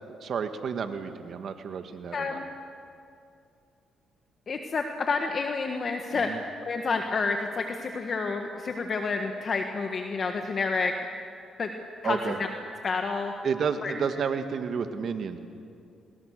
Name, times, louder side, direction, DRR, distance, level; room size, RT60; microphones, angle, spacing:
voice 1, 0.1-2.4 6.1-6.4 12.0-12.4 13.4-15.4, right 6 dB, 60° right, 8 dB, 1.8 m, -31 dB
voice 2, 2.1-2.4 4.5-6.3 6.7-10.9 11.6-11.7 12.0-12.5 12.8-13.3 13.8-13.9, left 4 dB, 45° left, 4 dB, 1.6 m, -29 dB
29.0 x 20.5 x 6.7 m, 2.5 s
cardioid pair, 90°, 0 cm